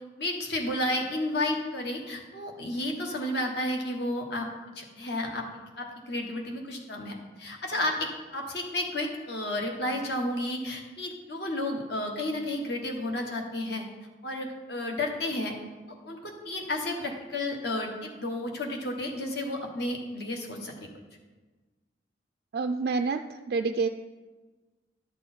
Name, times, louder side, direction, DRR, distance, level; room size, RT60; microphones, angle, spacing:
voice 1, 0.2-4.5 4.7-13.8 14.2-15.5 16.1-20.7, left 1 dB, 60° left, 2 dB, 1.4 m, -32 dB
voice 2, 22.5-23.9, right 4 dB, 55° right, 6 dB, 0.3 m, -28 dB
11.5 x 6.3 x 4.3 m, 1.3 s
head